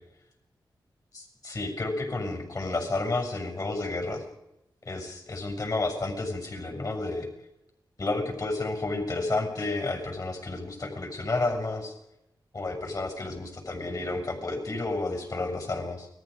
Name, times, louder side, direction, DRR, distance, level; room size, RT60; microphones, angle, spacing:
voice 1, 1.1-4.2 4.9-7.3 8.0-12.0 12.5-16.1, left 2 dB, 45° left, 4 dB, 7.0 m, -31 dB
29.5 x 22.0 x 5.2 m, 0.85 s
cardioid pair, 70°, 9 cm